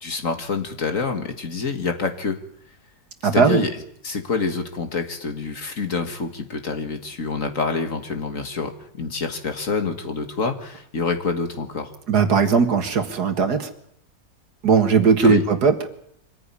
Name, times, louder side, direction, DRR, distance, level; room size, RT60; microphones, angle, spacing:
voice 1, 0.0-2.4 3.3-3.7 4.0-11.9 15.2-15.4, left 4 dB, 45° left, 6 dB, 2.1 m, -27 dB
voice 2, 3.2-3.6 12.1-13.7 14.6-15.9, right 5 dB, 60° right, 7 dB, 2.2 m, -18 dB
24.5 x 15.0 x 9.9 m, 0.73 s
omnidirectional pair, 1.9 m